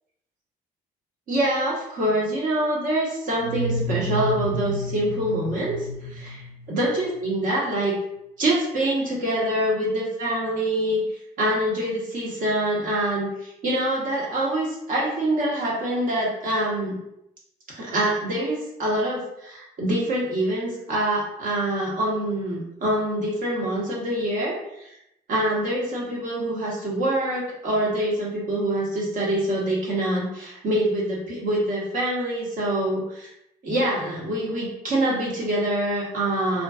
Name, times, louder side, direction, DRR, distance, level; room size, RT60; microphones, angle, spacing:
voice 1, 1.3-5.8 6.1-6.4 6.7-7.9 8.4-11.0 11.4-17.0 17.7-24.9 25.3-33.3 33.6-36.6, right 1 dB, 55° right, -4 dB, 0.9 m, -25 dB
sound 1, 3.4-7.1, right 1 dB, ahead, 1.0 m, -30 dB
2.5 x 2.2 x 2.3 m, 0.80 s
cardioid pair, 110°, 17 cm